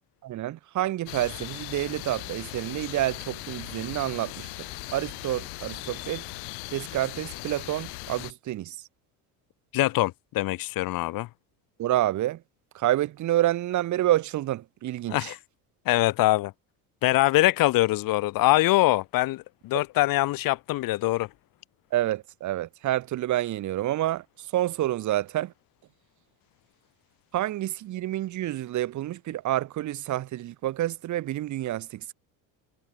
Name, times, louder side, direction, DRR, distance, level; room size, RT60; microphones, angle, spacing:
voice 1, 0.2-6.2 6.7-8.8 11.8-12.4 12.7-15.3 21.9-25.5 27.3-32.1, right 14 dB, 45° right, 1.2 m, -28 dB
sound 1, 1.1-8.3, left 28 dB, 75° left, 1.0 m, -39 dB
sound 2, 2.0-8.1, right 40 dB or more, 90° right, 6.9 m, -56 dB
voice 2, 9.7-11.3 15.1-15.4 15.8-16.5 17.0-21.3, left 18 dB, 60° left, 1.4 m, -23 dB
cardioid pair, 125°, 39 cm